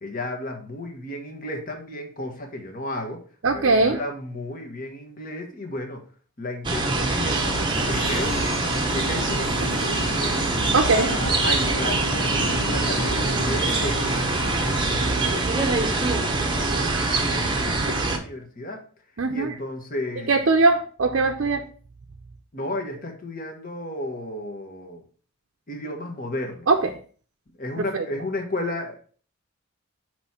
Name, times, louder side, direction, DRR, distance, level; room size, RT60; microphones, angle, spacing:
voice 1, 0.0-3.2 3.5-6.0 6.4-7.6 7.9-8.4 8.9-10.4 10.8-14.3 14.6-18.8 19.3-20.3 22.5-25.0 25.7-26.7 27.6-29.0, left 1 dB, 40° left, 3 dB, 1.2 m, -33 dB
voice 2, 3.4-4.0 10.7-11.1 19.2-19.5 20.3-21.6 26.7-26.9 27.8-27.9, right 3 dB, 60° right, 2 dB, 0.5 m, -20 dB
sound 1, 6.6-18.2, right 3 dB, 20° right, 0.8 m, -24 dB
sound 2, 7.2-15.4, left 1 dB, 70° left, 1.0 m, -33 dB
6.0 x 3.1 x 5.6 m, 0.42 s
head